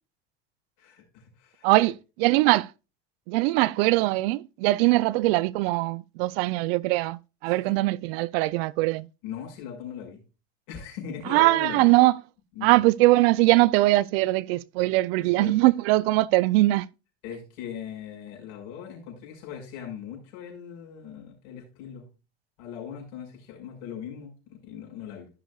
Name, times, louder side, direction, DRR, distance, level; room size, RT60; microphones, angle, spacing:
voice 1, 0.8-1.9 7.5-7.8 9.2-10.2 10.7-11.9 12.6-12.8 15.2-15.6 17.2-22.1 22.6-25.3, left 8 dB, 65° left, 5.8 m, -40 dB
voice 2, 1.6-2.7 3.3-9.1 11.3-12.2 12.6-16.9, right 19 dB, 60° right, 0.5 m, -21 dB
16.0 x 6.5 x 2.4 m
hypercardioid pair, 95°, 34 cm